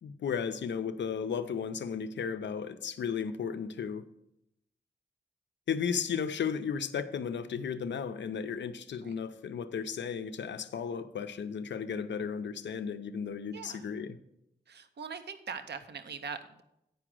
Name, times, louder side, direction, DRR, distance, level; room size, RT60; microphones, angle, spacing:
voice 1, 0.0-4.1 5.7-14.2, left 7 dB, 85° left, 10 dB, 0.5 m, -34 dB
voice 2, 13.5-14.0 14.7-16.6, right 5 dB, 70° right, 10 dB, 0.7 m, -42 dB
9.3 x 4.9 x 6.1 m, 0.83 s
cardioid pair, 60°, 18 cm